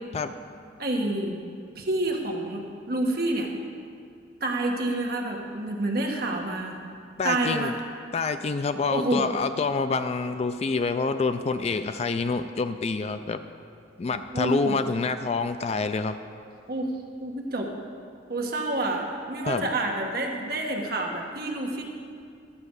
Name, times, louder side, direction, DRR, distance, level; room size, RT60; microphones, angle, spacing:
voice 1, 0.8-1.4 1.7-3.5 4.4-6.8 7.2-7.7 8.9-9.3 14.3-14.8 16.7-16.9 17.2-17.7 18.3-21.8, right 2 dB, 50° right, 1 dB, 1.3 m, -28 dB
voice 2, 7.2-7.8 8.1-13.4 14.0-16.2 19.5-19.7, left 4 dB, 35° left, 10 dB, 0.3 m, -27 dB
12.0 x 5.0 x 8.1 m, 2.3 s
head